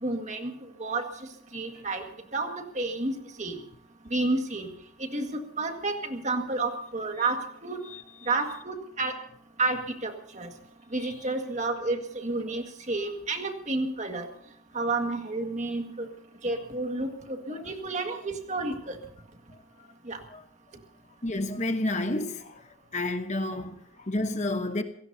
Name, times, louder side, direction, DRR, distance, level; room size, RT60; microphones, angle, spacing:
voice 1, 0.0-0.5 0.8-1.0 1.5-2.0 2.3-3.1 3.4-3.6 4.1-4.7 5.0-7.8 8.3-9.2 9.6-10.5 10.9-14.3 14.7-16.1 16.4-19.0 20.1-20.2, right 3 dB, 35° right, 1.9 m, -30 dB
voice 2, 21.2-22.6 22.9-24.8, left 2 dB, 35° left, 1.0 m, -30 dB
27.5 x 17.0 x 2.8 m
head